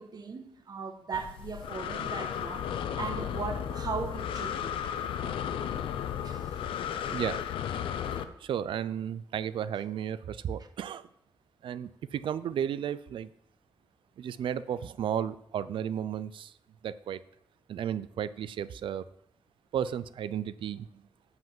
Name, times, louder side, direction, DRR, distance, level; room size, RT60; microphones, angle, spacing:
voice 1, 0.0-4.7 5.2-5.3 6.2-6.6, right 5 dB, 50° right, 1.3 m, -38 dB
Breathing, 1.1-8.2, left 9 dB, 90° left, 0.6 m, -34 dB
voice 2, 8.4-11.1 11.6-13.3 14.2-16.5 16.8-17.2 17.7-19.1 19.7-21.0, right 9 dB, 75° right, 0.4 m, -33 dB
8.0 x 5.7 x 7.3 m
cardioid pair, 75°, 9 cm